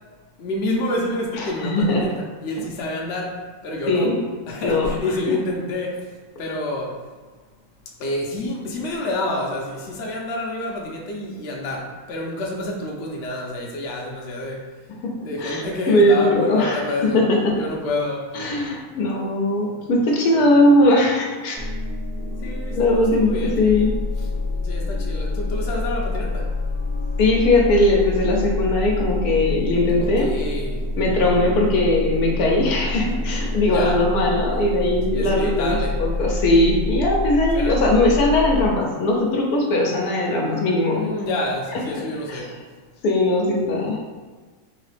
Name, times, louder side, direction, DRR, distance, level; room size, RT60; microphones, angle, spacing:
voice 1, 0.4-4.1 4.5-6.1 6.4-7.0 8.0-14.7 15.2-17.2 17.5-18.4 22.4-23.9 24.2-24.3 24.6-26.5 30.0-30.9 33.6-34.0 35.1-36.0 37.5-37.8 40.9-42.5, left 1 dB, 55° left, -2 dB, 0.8 m, -28 dB
voice 2, 1.4-2.0 3.9-4.2 4.6-4.9 15.0-15.6 15.9-16.8 17.1-17.6 18.3-21.6 22.7-23.9 27.2-30.3 31.0-41.0 42.3-42.5 43.0-44.0, left 1 dB, 75° left, -1 dB, 1.2 m, -19 dB
sound 1, 21.6-38.7, left 2 dB, 10° right, 0.6 m, -27 dB
3.9 x 2.8 x 3.3 m, 1.4 s
omnidirectional pair, 1.6 m